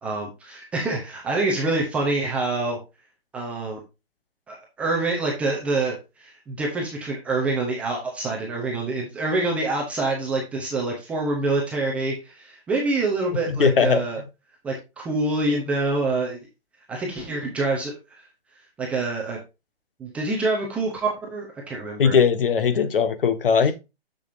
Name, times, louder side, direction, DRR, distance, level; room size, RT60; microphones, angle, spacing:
voice 1, 0.0-2.8 3.3-3.8 4.5-14.2 14.6-16.4 16.9-18.3 18.8-19.4 20.0-22.2, right 2 dB, 5° right, 0.6 m, -26 dB
voice 2, 13.5-14.0 22.0-23.7, left 6 dB, 60° left, 1.4 m, -19 dB
6.9 x 6.7 x 2.6 m
hypercardioid pair, 155°, 32 cm